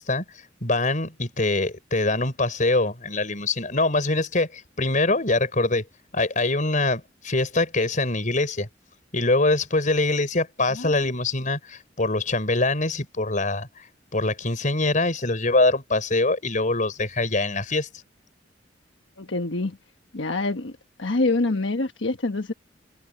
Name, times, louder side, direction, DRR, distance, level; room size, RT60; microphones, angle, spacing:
voice 1, 0.0-5.9 6.1-8.7 9.1-17.9, left 2 dB, 45° left, 5.1 m, -24 dB
voice 2, 10.7-11.1 19.2-19.8 20.1-20.7 21.0-22.5, left 2 dB, 85° left, 1.2 m, -26 dB
head